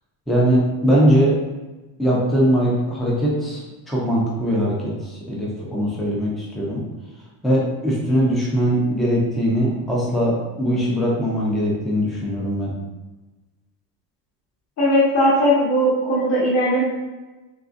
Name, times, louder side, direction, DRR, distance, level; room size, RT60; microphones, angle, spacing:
voice 1, 0.3-1.4 2.0-6.8 7.4-12.7, equal, ahead, -5 dB, 0.3 m, -21 dB
voice 2, 14.8-16.8, equal, 35° left, -7 dB, 0.9 m, -18 dB
3.8 x 3.2 x 2.4 m, 1.2 s
cardioid pair, 165°, 45 cm